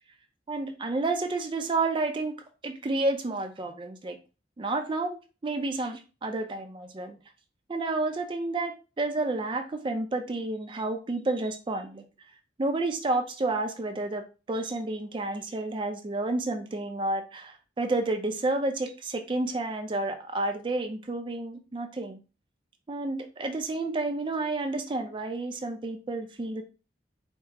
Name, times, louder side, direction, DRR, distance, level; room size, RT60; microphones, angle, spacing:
voice 1, 0.5-2.4 2.6-4.2 4.6-5.2 5.4-7.2 7.7-12.0 12.6-22.2 22.9-26.6, right 2 dB, 30° right, 6 dB, 0.4 m, -30 dB
4.4 x 2.0 x 3.6 m, 0.32 s
head